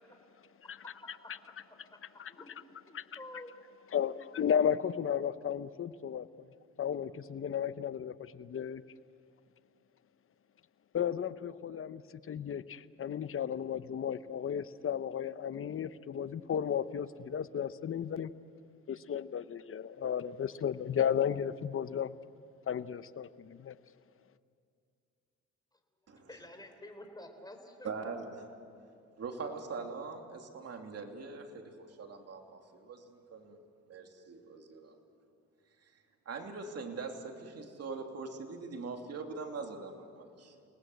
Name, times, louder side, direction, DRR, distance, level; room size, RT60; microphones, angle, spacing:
voice 1, 2.9-3.5 26.3-27.9, left 1 dB, 15° left, 5 dB, 3.8 m, -49 dB
voice 2, 3.9-6.5 6.8-8.8 10.9-12.0 12.3-18.3 18.9-22.1 22.7-23.8, left 8 dB, 45° left, 14 dB, 0.9 m, -34 dB
voice 3, 27.8-28.4 29.2-33.6 33.9-35.0 36.2-40.5, right 4 dB, 55° right, 3 dB, 3.0 m, -42 dB
29.5 x 19.0 x 8.0 m, 2.4 s
cardioid pair, 90°, 30 cm